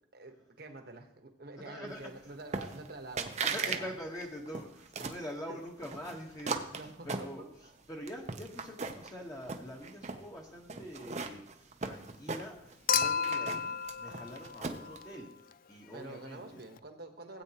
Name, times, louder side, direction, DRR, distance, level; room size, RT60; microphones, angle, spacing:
voice 1, 0.1-4.0 5.5-5.6 6.7-7.3 15.9-17.4, right 2 dB, 55° right, 6 dB, 1.2 m, -47 dB
voice 2, 1.5-2.3 3.4-6.8 7.0-11.4 11.8-15.3 15.7-16.6, equal, 20° left, -1 dB, 1.2 m, -44 dB
sound 1, 2.5-2.9 3.2-3.8 4.1-5.2 5.8-7.7 8.1-9.1 9.4-10.2 10.7-12.7 13.0-15.0, right 4 dB, 40° right, 0.7 m, -37 dB
Human group actions / Chink clink / Liquid, 12.9-15.3 16.8-16.9, left 7 dB, 50° left, 0.4 m, -32 dB
16.5 x 8.5 x 2.9 m, 0.78 s
head